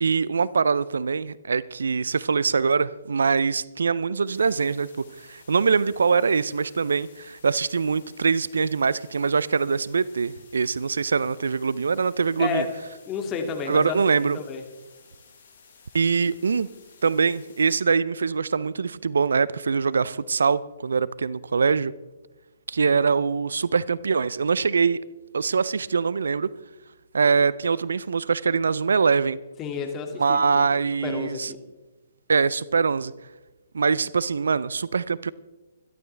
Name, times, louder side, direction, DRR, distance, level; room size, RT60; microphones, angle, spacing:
voice 1, 0.0-4.9 5.2-12.7 13.7-14.4 15.9-16.7 17.0-21.9 22.7-25.0 25.3-26.5 27.1-29.4 30.2-31.5 32.3-33.1 33.7-35.3, right 5 dB, 75° right, 0.5 m, -23 dB
sound 1, 4.2-17.8, left 5 dB, 65° left, 6.4 m, -54 dB
voice 2, 13.1-13.9 14.3-14.6 29.6-30.6 31.0-31.6, left 6 dB, 25° left, 2.3 m, -31 dB
25.5 x 12.0 x 3.4 m
figure-of-eight pair, 130°, 0 cm